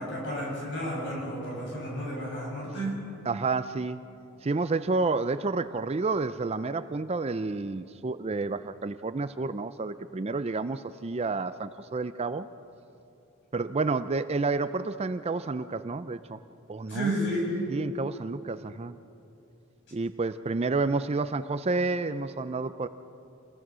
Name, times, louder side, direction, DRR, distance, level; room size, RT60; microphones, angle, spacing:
voice 1, 0.0-3.0 16.9-17.5, equal, 55° left, -3 dB, 8.0 m, -32 dB
voice 2, 3.3-4.0 4.4-12.5 13.5-16.4 16.7-17.1 17.7-19.0 19.9-22.9, right 3 dB, 30° right, 12 dB, 0.4 m, -30 dB
28.0 x 20.5 x 6.2 m, 2.7 s
head